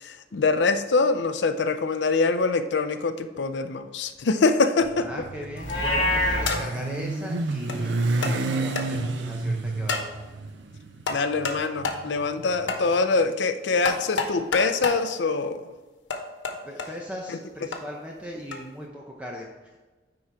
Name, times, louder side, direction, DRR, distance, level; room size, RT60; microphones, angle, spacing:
voice 1, 0.0-5.1 11.1-15.6, left 4 dB, 75° left, 9 dB, 0.5 m, -24 dB
Motorcycle, 4.8-13.0, right 2 dB, 80° right, 0.6 m, -30 dB
voice 2, 5.0-10.1 16.6-19.8, equal, 5° right, -2 dB, 0.7 m, -38 dB
sound 1, 5.6-5.9 6.5-6.9 7.7-7.8 8.2-8.4 8.8-8.9 9.9-10.1 11.1-11.6 11.8-12.0 12.7-12.8 13.8-15.0 16.1-16.9 17.7-17.8 18.5-18.6, left 4 dB, 90° left, 1.0 m, -29 dB
Livestock farm animals working animals, 5.6-6.5, left 1 dB, 35° left, 1.8 m, -24 dB
9.9 x 3.9 x 4.6 m, 1.2 s
head